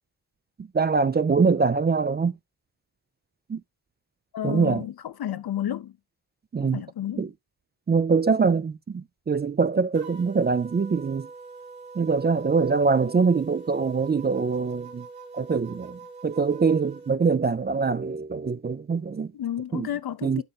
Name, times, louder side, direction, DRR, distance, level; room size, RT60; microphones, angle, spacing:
voice 1, 0.7-2.3 3.5-3.6 4.4-4.8 6.5-6.8 7.2-7.3 7.9-11.3 12.0-15.1 15.3-19.3 19.7-19.9 20.2-20.4, right 5 dB, 25° right, 0.4 m, -23 dB
voice 2, 4.3-6.0 6.6-7.3 19.3-20.4, left 11 dB, 70° left, 0.8 m, -31 dB
sound 1, 9.9-17.1, right 4 dB, 75° right, 2.6 m, -44 dB
12.0 x 4.2 x 2.4 m
wide cardioid pair, 95°, 38 cm